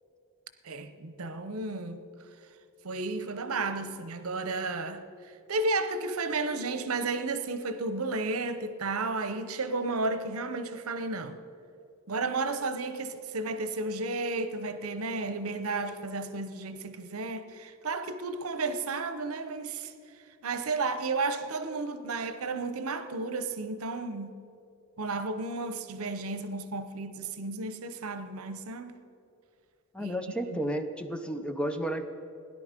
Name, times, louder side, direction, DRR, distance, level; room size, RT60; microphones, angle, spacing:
voice 1, 0.6-2.0 2.8-5.0 5.5-11.4 12.1-19.9 20.4-24.3 25.0-29.0 30.0-30.2, right 3 dB, 85° right, 0.8 m, -33 dB
voice 2, 29.9-32.0, right 1 dB, 5° left, 0.6 m, -32 dB
17.0 x 11.0 x 5.1 m
head